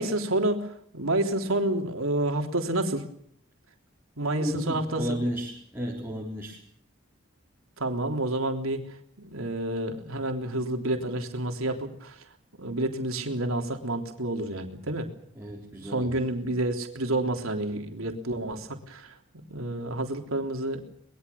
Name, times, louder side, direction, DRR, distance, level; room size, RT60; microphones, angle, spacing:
voice 1, 0.0-3.1 4.2-5.1 7.8-8.9 9.2-12.3 12.6-15.1 15.8-19.1 19.5-20.8, right 1 dB, 80° right, 3 dB, 3.6 m, -29 dB
voice 2, 4.3-6.6 15.3-16.2, equal, 10° right, -3 dB, 3.9 m, -33 dB
23.5 x 21.0 x 7.1 m, 0.66 s
head